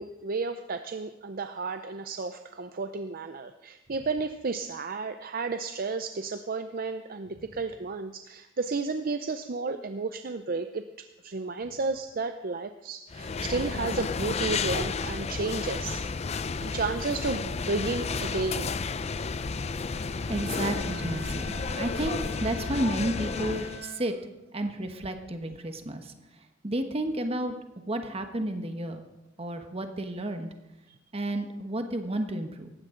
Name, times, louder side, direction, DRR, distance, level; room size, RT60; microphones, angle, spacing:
voice 1, 0.0-16.0 16.6-18.9, right 3 dB, 45° right, 9 dB, 0.6 m, -32 dB
sound 1, 13.1-23.8, left 4 dB, 30° left, 0.5 m, -32 dB
Bowed string instrument, 20.2-24.7, right 1 dB, 75° right, 1.5 m, -45 dB
voice 2, 20.3-21.4 21.8-24.1 24.5-26.1 26.6-27.6 27.9-29.0 29.4-30.5 31.1-32.7, right 1 dB, 30° right, 6 dB, 1.2 m, -31 dB
18.5 x 15.5 x 3.8 m, 0.97 s
head